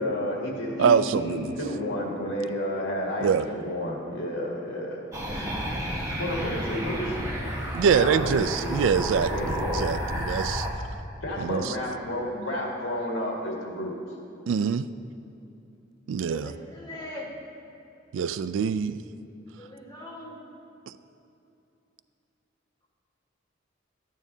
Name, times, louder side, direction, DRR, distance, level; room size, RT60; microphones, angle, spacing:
voice 1, 0.0-5.0 6.2-7.3 7.9-9.8 11.2-14.0, left 1 dB, 85° left, -2 dB, 1.8 m, -31 dB
voice 2, 0.8-1.5 3.2-3.5 7.7-10.7 11.4-11.6 14.5-14.9 16.1-16.5 18.1-19.0, right 6 dB, 75° right, 13 dB, 0.3 m, -24 dB
sound 1, 5.1-10.7, equal, 15° right, 1.0 m, -31 dB
voice 3, 16.3-17.3 19.6-20.4, left 1 dB, 20° left, -5 dB, 1.5 m, -41 dB
12.5 x 9.1 x 2.7 m, 2.7 s
head